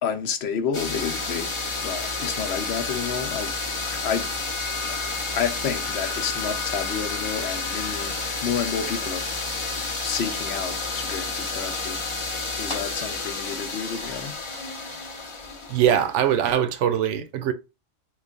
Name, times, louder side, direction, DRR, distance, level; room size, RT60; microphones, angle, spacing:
voice 1, 0.0-3.5 3.8-4.3 4.8-5.0 5.3-9.3 9.8-12.0 12.6-14.4, left 7 dB, 70° left, 0.8 m, -30 dB
sound 1, 0.7-16.5, left 3 dB, 35° left, 0.5 m, -30 dB
voice 2, 15.7-17.5, right 10 dB, 80° right, 0.9 m, -22 dB
3.1 x 2.3 x 3.6 m
omnidirectional pair, 1.2 m